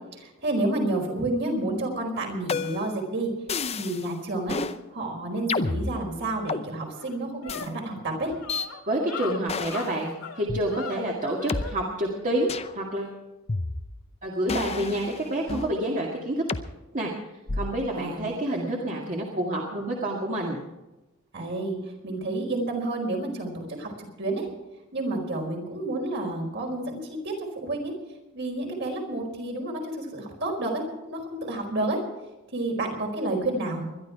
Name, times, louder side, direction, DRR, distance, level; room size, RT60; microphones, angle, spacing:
voice 1, 0.1-3.3 3.8-4.6 4.9-8.4 17.9-18.6 21.3-21.8 22.0-24.5 24.9-27.9 28.3-32.0 32.5-33.9, right 2 dB, 55° right, 1 dB, 4.7 m, -30 dB
sound 1, 2.5-3.0 3.5-4.1 4.5-4.8 5.5-6.7 7.5-7.7 8.5-8.7 9.5-9.9 10.5-10.6 11.5-11.6 12.5-12.8 13.5-14.1 14.5-15.8 16.5-16.7 17.5-17.9, left 3 dB, 30° left, 0.7 m, -30 dB
sound 2, 6.8-11.8, left 5 dB, 90° left, 2.0 m, -39 dB
voice 2, 8.9-13.2 14.2-16.4 16.9-17.1 17.5-20.6, right 1 dB, 35° right, -2 dB, 2.0 m, -28 dB
21.5 x 12.0 x 4.7 m, 1.0 s
head